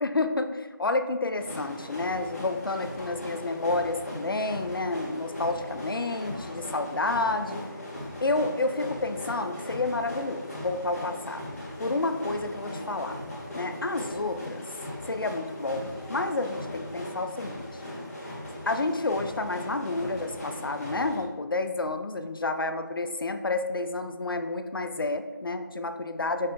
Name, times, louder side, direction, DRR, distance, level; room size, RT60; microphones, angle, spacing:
voice 1, 0.0-7.6 8.2-11.5 11.8-13.2 13.5-14.6 15.1-17.7 18.7-26.5, left 2 dB, 75° left, 8 dB, 0.4 m, -30 dB
sound 1, 1.4-21.2, left 1 dB, 45° left, 1.1 m, -38 dB
5.3 x 2.2 x 3.7 m, 1.2 s
figure-of-eight pair, 165°, 12 cm